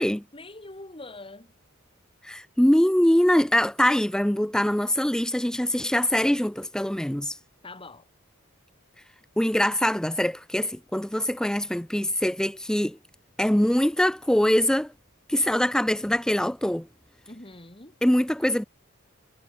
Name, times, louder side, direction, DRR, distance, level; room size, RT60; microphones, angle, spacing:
voice 1, 0.3-1.5 7.6-8.1 17.3-17.9, left 2 dB, 25° left, 4.1 m, -43 dB
voice 2, 2.2-7.4 9.4-13.0 13.4-14.9 15.3-16.9 18.0-18.6, equal, 5° left, 0.4 m, -23 dB
head